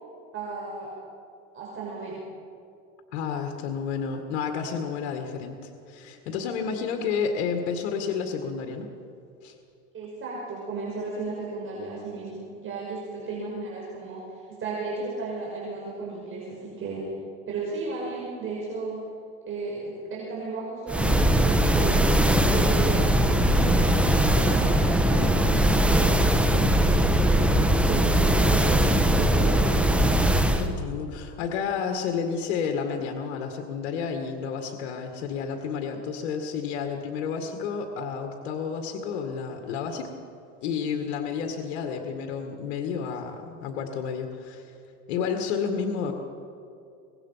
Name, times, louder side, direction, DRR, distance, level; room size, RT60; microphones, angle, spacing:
voice 1, 0.3-0.9 1.5-2.3 9.9-17.0 17.5-19.0 19.5-22.2 22.5-26.2 26.5-30.0, right 3 dB, 35° right, -4 dB, 5.7 m, -34 dB
voice 2, 3.1-8.9 9.4-9.5 30.6-40.1 40.6-44.7 45.1-46.1, left 6 dB, 85° left, 4 dB, 2.1 m, -31 dB
sound 1, 20.9-30.7, right 1 dB, 5° right, 1.4 m, -21 dB
24.5 x 19.5 x 5.8 m, 2.5 s
supercardioid pair, 125°, 36 cm